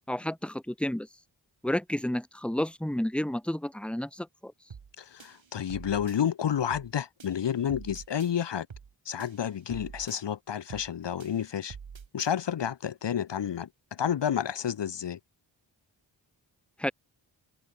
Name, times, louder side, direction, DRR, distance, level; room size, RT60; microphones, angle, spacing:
voice 1, 0.1-1.1 1.6-4.5 16.8-16.9, left 1 dB, ahead, 1.5 m, -31 dB
sound 1, 4.7-4.9 5.2-6.2 6.7-6.9 7.2-8.3 8.7-8.9 9.2-10.2 10.7-10.9 11.2-12.3, right 6 dB, 75° right, 3.9 m, -46 dB
voice 2, 5.0-8.7 9.1-11.8 12.1-15.2, left 9 dB, 60° left, 0.9 m, -30 dB
open air
cardioid pair, 45°, 47 cm